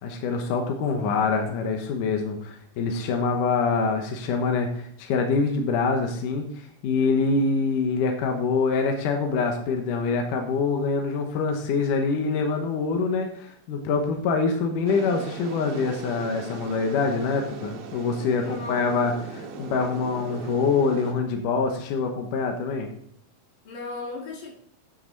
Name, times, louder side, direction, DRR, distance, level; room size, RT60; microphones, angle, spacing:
voice 1, 0.0-6.5 6.8-22.9, left 4 dB, 75° left, 3 dB, 1.9 m, -25 dB
sound 1, 14.9-21.1, right 4 dB, 70° right, 3.6 m, -39 dB
voice 2, 18.4-19.1 23.6-24.5, left 3 dB, 50° left, 0 dB, 3.4 m, -36 dB
9.6 x 9.1 x 4.0 m, 0.65 s
omnidirectional pair, 5.4 m